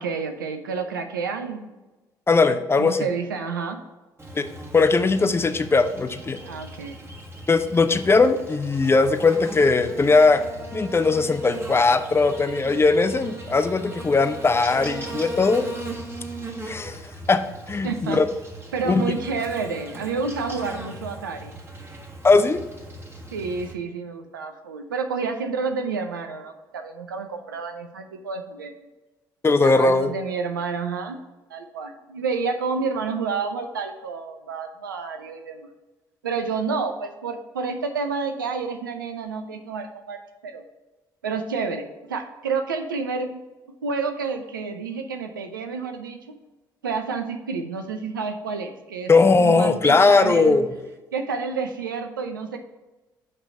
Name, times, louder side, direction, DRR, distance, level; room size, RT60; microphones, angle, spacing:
voice 1, 0.0-1.7 2.5-3.8 6.4-7.0 17.8-18.2 18.7-21.6 23.3-28.7 29.6-31.2 31.5-35.7 36.2-40.6 41.2-43.4 43.8-46.4 46.8-49.1 49.4-50.6 51.1-52.6, right 5 dB, 80° right, 7 dB, 0.6 m, -29 dB
voice 2, 2.3-3.1 4.4-4.5 4.7-6.4 7.5-10.4 10.7-15.7 16.6-17.0 17.3-18.3 18.8-19.1 22.2-22.6 29.4-30.1 49.1-50.7, left 3 dB, 25° left, 9 dB, 0.6 m, -19 dB
Buzz, 4.2-23.7, right 2 dB, 20° right, 1.5 m, -38 dB
8.7 x 3.3 x 5.7 m, 1.1 s
figure-of-eight pair, 45°, 11 cm